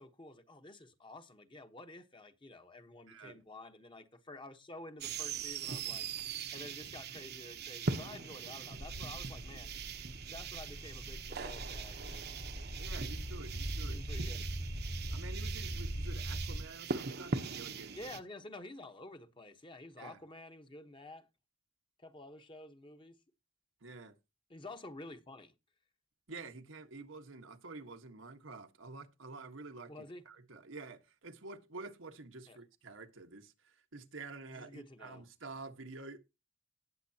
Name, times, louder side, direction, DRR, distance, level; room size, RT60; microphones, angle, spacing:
voice 1, 0.0-6.1 6.5-9.7 10.3-12.3 13.9-14.5 17.9-21.3 22.0-23.1 24.5-25.5 29.9-30.2 32.5-32.6 34.5-35.2, left 2 dB, 25° left, 1.2 m, -50 dB
voice 2, 3.1-3.4 12.8-14.0 15.1-18.1 20.0-20.2 23.8-24.1 26.3-29.9 30.2-36.2, right 3 dB, 90° right, 1.5 m, -49 dB
sound 1, 5.0-18.2, right 5 dB, 55° right, 1.0 m, -41 dB
sound 2, 8.8-16.6, right 1 dB, 55° left, 2.5 m, -41 dB
18.5 x 7.5 x 2.9 m
head